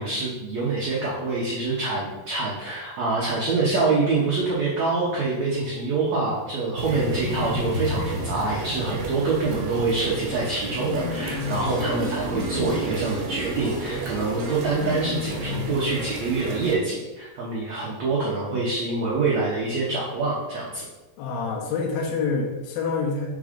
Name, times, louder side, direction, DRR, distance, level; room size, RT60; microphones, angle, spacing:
voice 1, 0.0-20.9, right 3 dB, 90° right, -5 dB, 1.5 m, -25 dB
sound 1, 6.8-16.7, right 3 dB, 65° right, 2.3 m, -33 dB
sound 2, 7.1-8.5 10.8-11.9 12.3-13.0 14.7-15.9, left 9 dB, 90° left, 2.1 m, -33 dB
sound 3, 10.9-16.8 17.1-17.2, right 2 dB, 50° right, 1.2 m, -36 dB
voice 2, 21.2-23.3, left 4 dB, 70° left, 0 dB, 2.5 m, -27 dB
6.4 x 3.7 x 5.1 m, 1.1 s
omnidirectional pair, 4.8 m